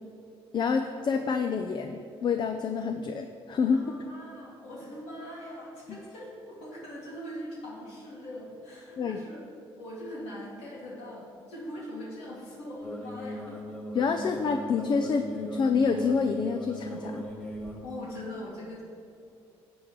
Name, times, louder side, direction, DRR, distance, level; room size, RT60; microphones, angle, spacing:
voice 1, 0.5-3.8 5.9-6.0 9.0-9.2 13.9-17.3, left 5 dB, 45° left, 6 dB, 0.5 m, -27 dB
voice 2, 3.7-9.4 9.8-13.6 14.2-14.3 17.8-18.8, left 1 dB, 90° left, -5 dB, 2.3 m, -41 dB
sound 1, 12.8-17.8, equal, 15° left, 2.2 m, -39 dB
12.0 x 8.0 x 3.1 m, 2.5 s
cardioid pair, 90°, 10 cm